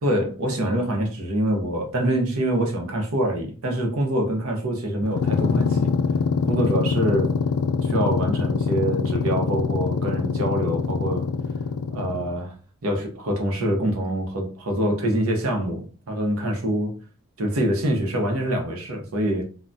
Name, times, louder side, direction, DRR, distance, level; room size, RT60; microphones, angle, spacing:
voice 1, 0.0-5.9 6.4-7.3 7.8-11.3 11.9-12.5 12.8-16.9 17.4-19.4, right 1 dB, 80° right, 0.8 m, -25 dB
sound 1, 5.0-12.4, left 5 dB, 85° left, 0.3 m, -24 dB
3.3 x 2.2 x 2.6 m
head